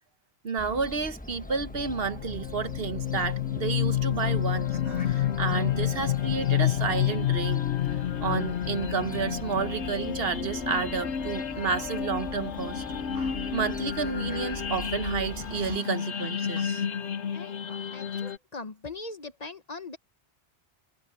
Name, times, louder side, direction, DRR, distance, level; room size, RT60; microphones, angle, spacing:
voice 1, 0.4-7.6 7.9-12.8 13.1-17.0 17.7-17.8, right 5 dB, 60° right, 1.2 m, -31 dB
Fowl, 0.6-15.8, left 1 dB, 10° left, 1.1 m, -43 dB
sound 1, 1.6-18.4, left 10 dB, 85° left, 1.2 m, -30 dB
voice 2, 17.9-20.0, left 3 dB, 40° left, 1.0 m, -40 dB
omnidirectional pair, 1.1 m